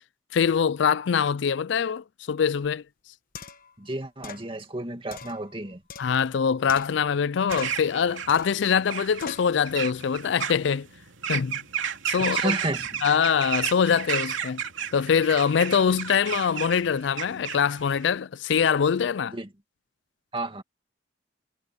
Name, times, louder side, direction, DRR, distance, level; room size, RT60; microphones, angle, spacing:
voice 1, 0.3-2.8 6.0-10.9 11.3-11.6 12.1-12.6 13.0-14.6 14.9-19.3, left 7 dB, 65° left, 0.4 m, -23 dB
sound 1, 2.6-2.7 3.3-3.7 4.2-4.5 5.1-6.4 6.7-7.2 7.5-7.9 8.3-8.6 9.2-9.5, left 5 dB, 45° left, 1.1 m, -41 dB
voice 2, 3.8-5.8 12.2-13.0 19.3-19.5 20.3-20.6, right 2 dB, 25° right, 2.2 m, -32 dB
sound 2, 7.5-18.2, right 8 dB, 80° right, 2.8 m, -33 dB
head